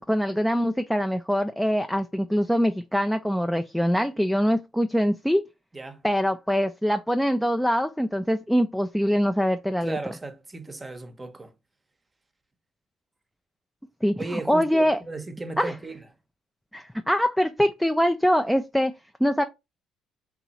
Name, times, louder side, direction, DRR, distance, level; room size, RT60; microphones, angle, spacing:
voice 1, 0.0-5.4 6.0-10.0 14.0-15.0 15.6-15.7 16.7-18.9 19.2-19.4, equal, ahead, 0.3 m, -23 dB
voice 2, 5.7-6.0 9.8-11.5 14.2-16.1, right 2 dB, 20° right, 0.7 m, -36 dB
2.9 x 2.4 x 4.0 m
supercardioid pair, 70°, 0 cm